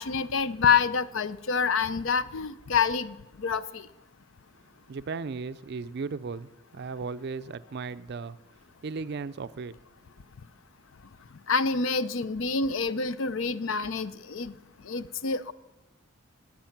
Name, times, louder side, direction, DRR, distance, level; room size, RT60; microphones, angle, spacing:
voice 1, 0.0-3.9 11.5-14.5 14.9-15.5, left 5 dB, 65° left, 0.5 m, -27 dB
voice 2, 4.9-8.4 8.8-9.8, right 4 dB, 50° right, 0.4 m, -36 dB
19.5 x 7.5 x 5.9 m
head